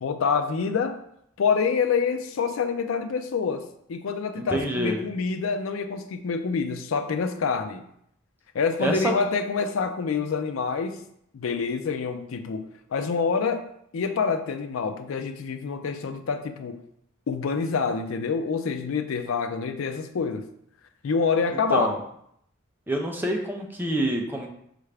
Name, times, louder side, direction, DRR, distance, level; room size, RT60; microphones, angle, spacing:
voice 1, 0.0-1.0 1.4-7.9 8.5-11.0 11.3-16.8 17.3-20.5 21.0-21.9, left 5 dB, 90° left, 8 dB, 0.4 m, -27 dB
voice 2, 4.4-5.0 8.8-9.1 21.5-22.0 22.9-24.5, right 1 dB, 10° right, 1 dB, 0.5 m, -27 dB
5.5 x 2.5 x 3.3 m, 0.72 s
head